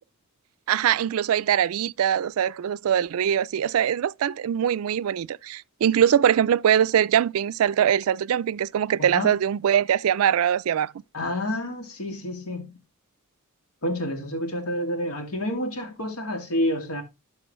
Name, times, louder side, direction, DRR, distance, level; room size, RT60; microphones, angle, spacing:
voice 1, 0.7-10.9, right 9 dB, 75° right, 0.3 m, -22 dB
voice 2, 9.0-9.3 11.1-12.6 13.8-17.0, left 1 dB, 90° left, 2.2 m, -29 dB
12.5 x 4.7 x 3.0 m
head